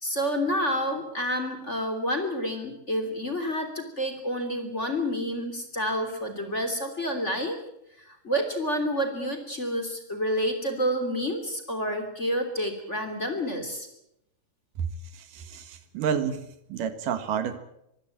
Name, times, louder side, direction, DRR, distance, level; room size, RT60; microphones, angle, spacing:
voice 1, 0.0-7.6 8.0-13.9, equal, 20° left, 6 dB, 3.2 m, -29 dB
voice 2, 15.1-16.4 16.7-17.6, right 7 dB, 75° right, 11 dB, 3.0 m, -29 dB
24.5 x 16.0 x 8.7 m, 0.80 s
omnidirectional pair, 3.9 m